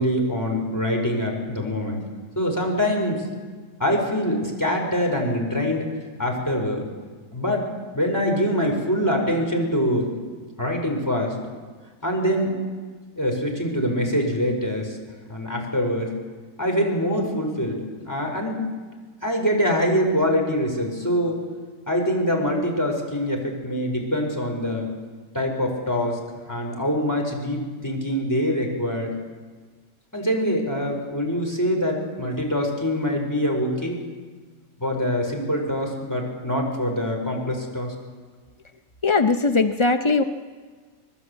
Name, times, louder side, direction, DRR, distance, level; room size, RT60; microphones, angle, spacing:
voice 1, 0.0-2.0 2.3-3.3 3.8-5.8 6.2-6.9 7.3-10.1 10.6-11.4 12.0-12.5 13.2-15.0 15.3-16.1 16.6-17.8 18.0-18.6 19.2-21.4 21.9-24.9 25.3-26.2 26.5-29.1 30.1-34.0 34.8-37.9, equal, 10° left, 1 dB, 5.1 m, -24 dB
voice 2, 39.0-40.2, left 3 dB, 45° left, 8 dB, 0.4 m, -19 dB
25.5 x 20.0 x 8.2 m, 1.5 s
omnidirectional pair, 1.7 m